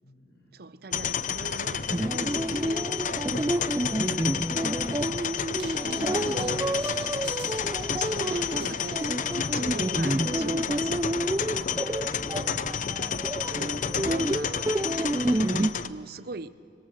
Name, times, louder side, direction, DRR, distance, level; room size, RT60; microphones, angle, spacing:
voice 1, 0.0-0.5 5.8-7.1 11.4-12.2, equal, 80° left, 0 dB, 6.4 m, -45 dB
voice 2, 0.5-2.9 6.3-6.4 7.9-9.1 9.4-11.0 13.1-16.5, right 3 dB, 60° right, 16 dB, 0.6 m, -41 dB
sound 1, 0.9-15.9, left 7 dB, 45° left, 0.6 m, -31 dB
sound 2, 1.9-15.7, right 1 dB, 15° right, 0.4 m, -29 dB
sound 3, 5.5-9.5, right 8 dB, 80° right, 1.8 m, -48 dB
25.5 x 25.5 x 6.6 m, 2.8 s
head